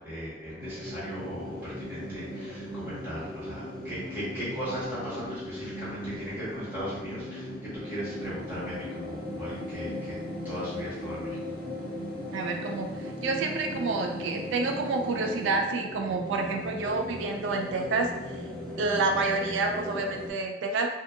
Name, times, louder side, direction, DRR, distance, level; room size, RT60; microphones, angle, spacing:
voice 1, 0.0-10.2 10.4-11.4, equal, 10° right, -11 dB, 1.1 m, -38 dB
sound 1, 0.6-20.3, left 1 dB, 5° left, 0.8 m, -38 dB
voice 2, 12.3-18.1 18.8-20.9, right 3 dB, 75° right, 3 dB, 0.3 m, -28 dB
2.7 x 2.3 x 2.3 m, 0.99 s
head